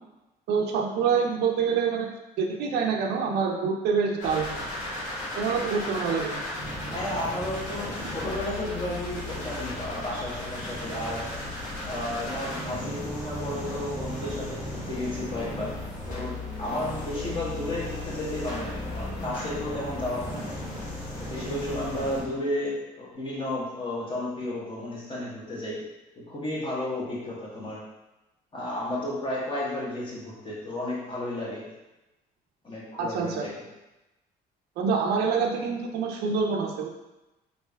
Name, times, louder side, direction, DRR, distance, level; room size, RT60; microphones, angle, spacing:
voice 1, 0.5-4.7 5.4-6.4 33.0-33.5 34.8-36.9, right 5 dB, 75° right, 2 dB, 0.5 m, -26 dB
sound 1, 4.2-22.2, left 1 dB, 50° left, 1.4 m, -35 dB
voice 2, 6.9-11.3 11.8-15.7 16.1-20.4 21.2-25.8 26.2-27.8 28.5-31.7 32.6-33.7, left 1 dB, 30° left, -5 dB, 1.2 m, -33 dB
3.3 x 2.6 x 3.3 m, 1.0 s
cardioid pair, 110°, 17 cm